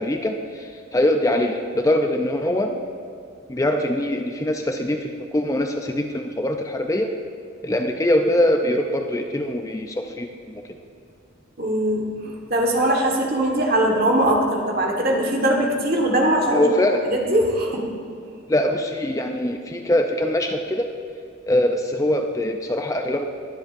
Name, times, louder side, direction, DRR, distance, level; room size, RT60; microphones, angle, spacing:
voice 1, 0.0-2.7 3.5-7.1 7.6-10.6 16.5-17.0 18.5-20.9 21.5-23.2, left 1 dB, 15° left, 4 dB, 0.4 m, -23 dB
voice 2, 11.6-16.7 17.1-17.9, right 1 dB, 50° right, 0 dB, 1.5 m, -21 dB
20.0 x 7.8 x 2.6 m, 2.4 s
head